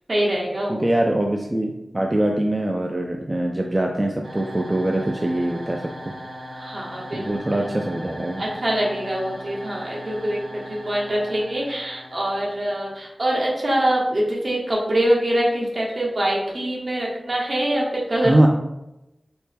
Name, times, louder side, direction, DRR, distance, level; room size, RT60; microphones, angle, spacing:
voice 1, 0.1-0.9 6.6-7.6 8.4-18.5, right 1 dB, 55° right, -3 dB, 1.0 m, -24 dB
voice 2, 0.7-5.8 7.1-8.4 18.2-18.5, right 1 dB, 25° right, 0 dB, 0.3 m, -22 dB
sound 1, 4.2-13.2, equal, 85° right, 1.1 m, -38 dB
4.3 x 2.1 x 3.4 m, 0.91 s
wide cardioid pair, 90°, 0 cm